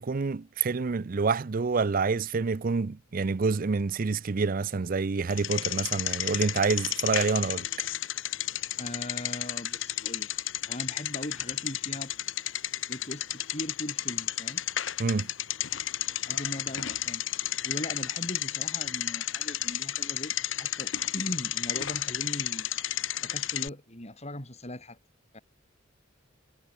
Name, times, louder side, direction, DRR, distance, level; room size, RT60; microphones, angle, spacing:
voice 1, 0.0-7.9 15.0-15.3, right 4 dB, 45° right, 0.5 m, -27 dB
Bicycle, 5.3-23.7, left 12 dB, 75° left, 1.3 m, -32 dB
voice 2, 8.8-10.3 10.7-12.1 12.9-14.6 16.2-17.2 17.6-22.7 23.2-25.0 25.3-25.4, left 1 dB, 35° left, 7.1 m, -39 dB
head